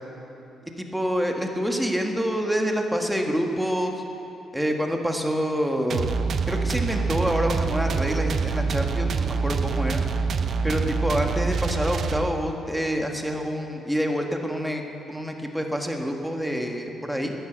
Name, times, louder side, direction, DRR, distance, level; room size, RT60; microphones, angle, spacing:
voice 1, 0.8-3.9 4.5-6.1 6.5-10.0 10.6-14.8 15.1-17.3, equal, 5° right, 3 dB, 1.5 m, -27 dB
sound 1, 5.9-12.6, right 4 dB, 55° right, 0.7 m, -26 dB
13.0 x 9.9 x 8.0 m, 2.9 s
cardioid pair, 90°, 0 cm